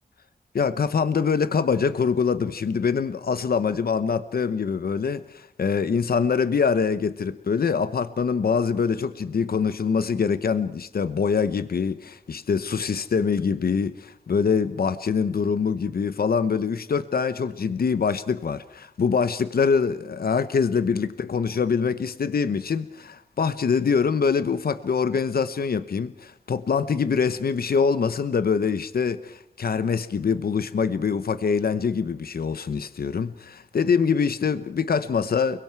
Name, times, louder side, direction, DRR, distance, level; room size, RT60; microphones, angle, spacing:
voice 1, 0.5-35.6, left 6 dB, 80° left, 0.9 m, -24 dB
30.0 x 22.0 x 4.7 m
wide cardioid pair, 80°, 15 cm